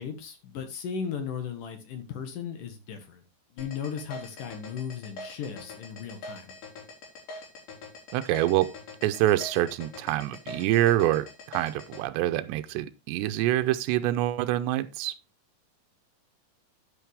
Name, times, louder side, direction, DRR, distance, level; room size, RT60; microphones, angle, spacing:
voice 1, 0.0-3.2 3.5-6.5, left 7 dB, 60° left, 2.8 m, -36 dB
sound 1, 3.6-12.0, left 2 dB, 80° left, 6.8 m, -43 dB
voice 2, 8.1-8.7 9.0-15.1, right 14 dB, 85° right, 2.9 m, -26 dB
10.5 x 9.3 x 3.5 m
omnidirectional pair, 4.9 m